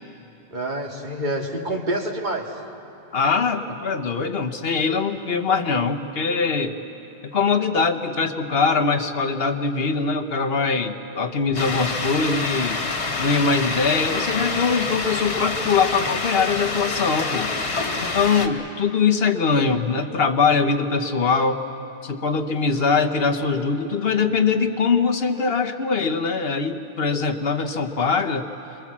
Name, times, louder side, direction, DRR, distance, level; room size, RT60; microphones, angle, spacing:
voice 1, 0.5-2.5, right 1 dB, 45° right, 1 dB, 2.1 m, -27 dB
voice 2, 3.1-6.7 7.3-12.8 13.2-17.5 18.0-21.6 22.0-28.4, left 5 dB, 65° left, 5 dB, 1.2 m, -22 dB
sound 1, 11.6-18.5, left 3 dB, 90° left, 1.8 m, -27 dB
26.5 x 22.5 x 7.4 m, 2.9 s
omnidirectional pair, 1.1 m